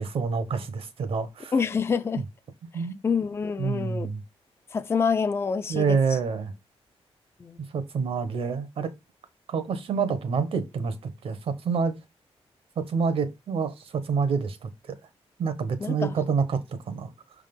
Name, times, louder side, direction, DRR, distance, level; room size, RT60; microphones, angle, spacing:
voice 1, 0.0-1.5 2.7-3.0 3.6-4.2 5.7-6.5 7.7-8.9 9.5-12.0 12.8-14.7 15.4-17.1, right 5 dB, 60° right, 1.1 m, -27 dB
voice 2, 1.5-2.3 2.7-4.1 4.7-6.0 7.4-7.6 15.8-16.2, left 5 dB, 25° left, 0.4 m, -27 dB
6.3 x 3.7 x 5.3 m
wide cardioid pair, 175°, 11 cm